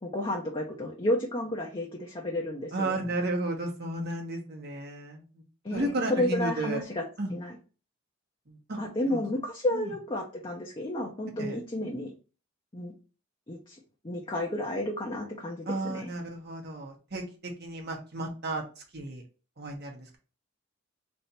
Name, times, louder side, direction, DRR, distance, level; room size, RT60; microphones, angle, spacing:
voice 1, 0.0-3.0 5.6-7.0 7.3-7.6 8.8-12.1 12.7-12.9 13.5-16.1, left 1 dB, 25° left, -2 dB, 0.7 m, -32 dB
voice 2, 2.7-5.4 5.7-6.8 7.2-7.3 8.5-8.8 9.1-9.2 9.7-9.9 11.4-11.6 15.7-19.2 19.6-20.2, right 2 dB, 55° right, 1 dB, 1.3 m, -33 dB
3.3 x 2.7 x 4.2 m, 0.34 s
head